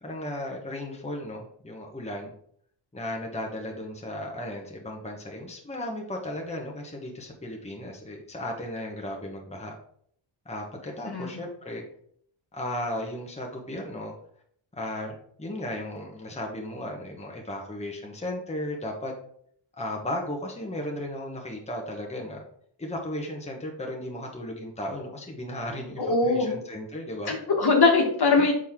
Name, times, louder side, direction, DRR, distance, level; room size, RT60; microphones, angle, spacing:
voice 1, 0.0-2.3 2.9-9.7 10.4-11.8 12.5-14.1 14.8-19.1 19.8-22.4 22.8-27.3 28.3-28.4, left 1 dB, 15° left, 0 dB, 1.1 m, -35 dB
voice 2, 11.0-11.4 26.0-26.6 27.2-28.5, left 3 dB, 50° left, 1 dB, 1.5 m, -22 dB
6.3 x 4.1 x 3.6 m, 0.64 s
cardioid pair, 60°, 49 cm